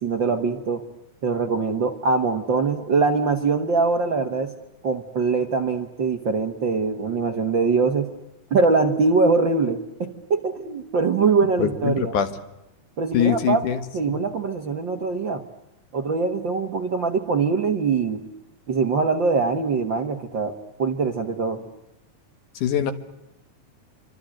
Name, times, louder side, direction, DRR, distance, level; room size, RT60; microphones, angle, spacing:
voice 1, 0.0-0.8 1.2-4.5 4.8-8.1 8.5-12.1 13.0-13.7 13.9-15.4 15.9-18.2 18.7-21.6, right 4 dB, 50° right, 5 dB, 1.6 m, -23 dB
voice 2, 11.6-12.3 13.1-13.8 14.1-14.2 22.6-22.9, left 10 dB, 70° left, 10 dB, 3.0 m, -23 dB
27.5 x 25.0 x 7.8 m, 0.93 s
omnidirectional pair, 3.8 m